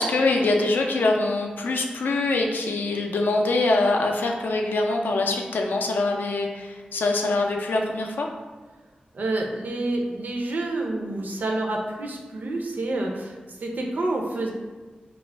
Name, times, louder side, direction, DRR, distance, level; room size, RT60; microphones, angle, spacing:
voice 1, 0.0-8.3, left 2 dB, 85° left, 1 dB, 0.3 m, -24 dB
voice 2, 9.1-14.5, right 2 dB, 65° right, 0 dB, 0.4 m, -28 dB
2.3 x 2.0 x 3.2 m, 1.3 s
cardioid pair, 65°, 3 cm